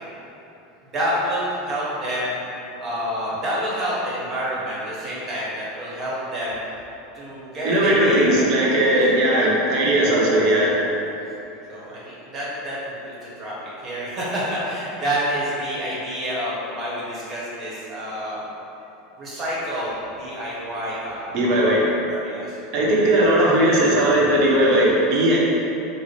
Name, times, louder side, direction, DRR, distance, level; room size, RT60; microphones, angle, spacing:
voice 1, 0.9-2.4 2.8-6.6 7.1-8.4 8.8-9.0 11.7-12.8 13.0-13.5 13.8-18.4 19.2-21.6 22.0-22.6, equal, 30° right, -7 dB, 1.1 m, -28 dB
voice 2, 7.6-10.8 21.3-21.9 22.7-25.4, right 1 dB, 50° right, -4 dB, 0.7 m, -18 dB
3.9 x 2.0 x 3.3 m, 2.9 s
supercardioid pair, 130°, 0 cm